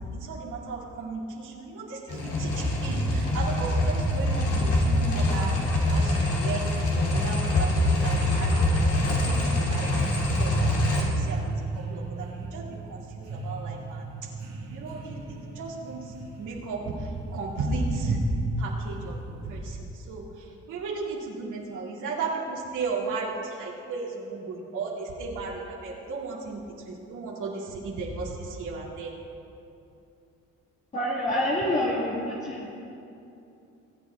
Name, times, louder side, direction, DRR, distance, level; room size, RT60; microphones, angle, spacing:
voice 1, 0.3-5.5 5.9-6.7 6.9-10.1 10.4-14.0 14.7-16.0 16.4-16.8 17.3-18.2 18.6-19.2 19.4-19.8 20.1-20.2 20.7-26.6 26.9-29.1, right 3 dB, 80° right, -4 dB, 2.6 m, -34 dB
sound 1, 2.1-11.0, left 2 dB, 80° left, 2.8 m, -25 dB
sound 2, 2.9-19.6, right 3 dB, 55° right, 2.1 m, -35 dB
voice 2, 30.9-32.7, left 1 dB, 25° left, -6 dB, 1.9 m, -27 dB
21.0 x 8.9 x 3.6 m, 2.7 s
cardioid pair, 90°, 30 cm